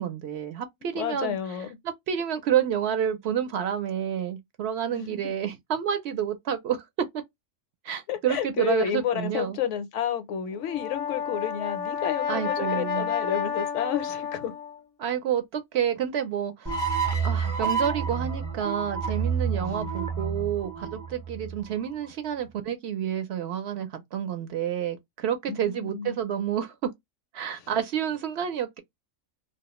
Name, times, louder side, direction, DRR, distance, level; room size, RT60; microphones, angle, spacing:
voice 1, 0.0-1.4 1.8-6.8 7.8-9.6 12.3-13.1 15.0-16.7 17.2-26.9 27.3-28.8, right 9 dB, 65° right, 0.7 m, -29 dB
voice 2, 0.8-1.7 4.9-5.3 8.1-14.5 25.5-26.2 27.5-27.6, left 9 dB, 75° left, 0.9 m, -31 dB
Brass instrument, 10.5-14.8, left 7 dB, 60° left, 0.3 m, -31 dB
sound 1, 16.7-21.9, right 6 dB, 20° right, 0.5 m, -29 dB
2.3 x 2.0 x 2.9 m
omnidirectional pair, 1.3 m